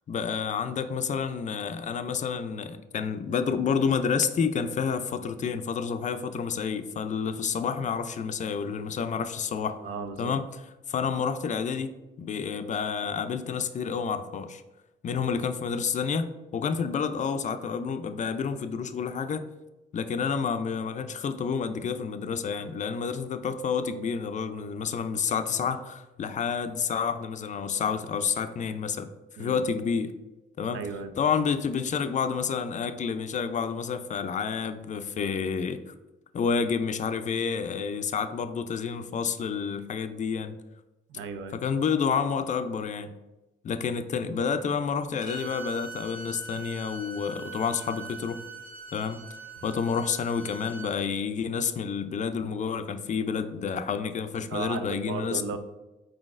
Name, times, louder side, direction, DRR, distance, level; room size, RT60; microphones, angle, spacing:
voice 1, 0.1-9.8 10.2-10.4 10.9-14.6 15.0-16.3 16.5-19.4 19.9-29.1 29.4-30.1 30.6-30.8 31.2-35.8 36.3-40.6 41.5-43.1 43.6-48.4 48.9-49.2 49.6-55.6, left 6 dB, 40° left, 10 dB, 0.4 m, -29 dB
voice 2, 9.8-10.3 29.4-29.6 30.7-31.1 41.1-41.6 54.5-55.6, right 5 dB, 85° right, 9 dB, 0.5 m, -35 dB
Bowed string instrument, 45.2-50.9, right 3 dB, 45° right, 1.0 m, -42 dB
4.5 x 3.9 x 2.4 m, 1.0 s
cardioid pair, 90°, 20 cm